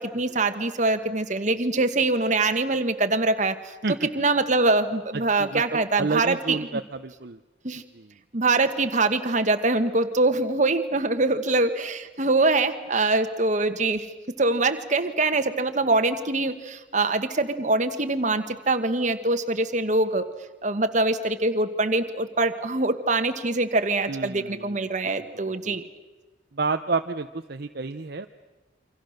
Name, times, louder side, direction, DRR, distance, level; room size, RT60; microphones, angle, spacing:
voice 1, 0.0-6.8 7.6-7.8 8.3-14.1 14.4-20.3 20.6-25.8, right 2 dB, 40° right, 9 dB, 1.5 m, -24 dB
voice 2, 5.1-7.4 8.0-8.1 24.1-24.8 25.6-25.8 26.5-28.3, right 4 dB, 55° right, 7 dB, 0.8 m, -30 dB
28.0 x 25.5 x 6.6 m, 1.2 s
head